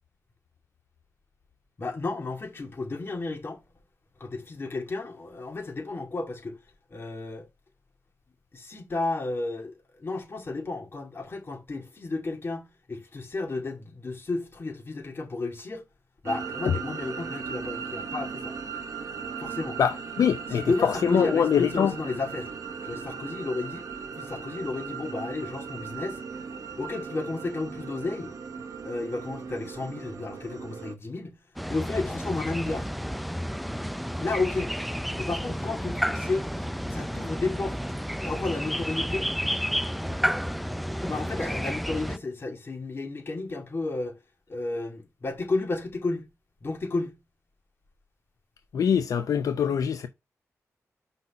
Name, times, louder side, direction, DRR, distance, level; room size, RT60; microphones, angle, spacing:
voice 1, 1.8-3.6 4.2-6.6 6.9-7.5 8.5-15.8 16.2-18.5 19.4-19.8 20.2-22.5 22.8-23.9 24.1-26.2 26.8-28.3 28.8-31.4 31.7-32.9 34.2-34.8 35.2-36.5 36.8-37.8 38.2-39.3 41.0-44.2 44.5-46.3 46.6-47.2, left 3 dB, 40° left, 2.2 m, -32 dB
sound 1, 16.2-30.9, right 6 dB, 75° right, 1.1 m, -38 dB
voice 2, 19.8-21.9 48.7-50.1, left 7 dB, 85° left, 0.5 m, -24 dB
sound 2, 31.6-42.2, equal, ahead, 0.4 m, -31 dB
5.4 x 4.1 x 5.7 m
wide cardioid pair, 95°, 6 cm